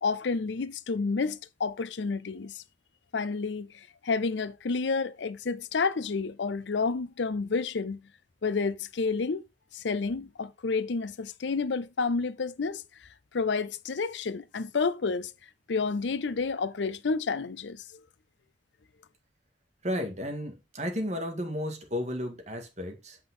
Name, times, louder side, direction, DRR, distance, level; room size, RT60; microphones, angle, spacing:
voice 1, 0.0-2.6 3.1-3.7 4.0-8.0 8.4-9.4 9.7-12.8 13.3-15.3 15.7-17.8, left 4 dB, 80° left, 0.6 m, -30 dB
voice 2, 19.8-23.2, equal, 40° right, 1.9 m, -33 dB
7.9 x 5.5 x 3.8 m
head